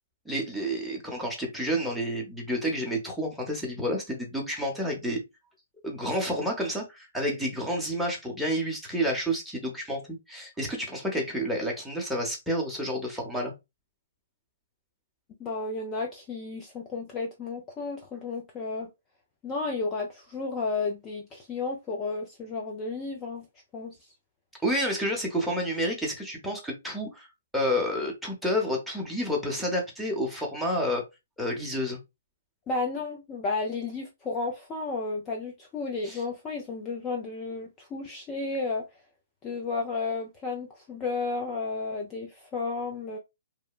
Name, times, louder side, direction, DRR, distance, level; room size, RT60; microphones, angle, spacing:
voice 1, 0.3-5.2 5.8-13.5 24.6-27.3 27.5-31.1 31.4-32.0 36.0-36.2, equal, ahead, 0.8 m, -29 dB
voice 2, 15.4-18.9 19.4-23.4 23.7-23.9 32.7-38.8 39.4-43.2, left 3 dB, 20° left, 0.4 m, -32 dB
2.8 x 2.1 x 2.3 m
hypercardioid pair, 135°, 0 cm